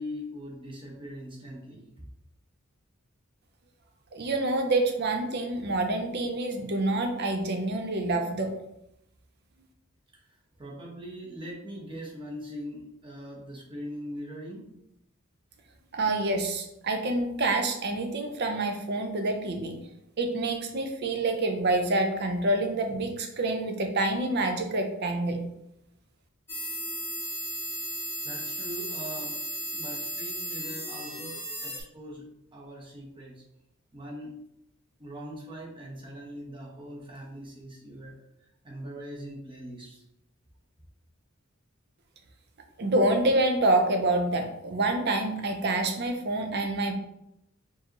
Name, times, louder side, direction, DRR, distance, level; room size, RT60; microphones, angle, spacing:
voice 1, 0.0-1.9 10.1-14.7 28.2-33.4 33.9-34.3 35.0-38.1 38.4-40.0, equal, 25° right, -3 dB, 1.0 m, -41 dB
voice 2, 4.1-8.5 15.9-19.8 20.2-25.4 42.8-46.9, right 2 dB, 50° right, 5 dB, 0.6 m, -27 dB
sound 1, 26.5-31.8, left 1 dB, 10° left, 0.7 m, -35 dB
4.6 x 2.7 x 3.0 m, 0.82 s
head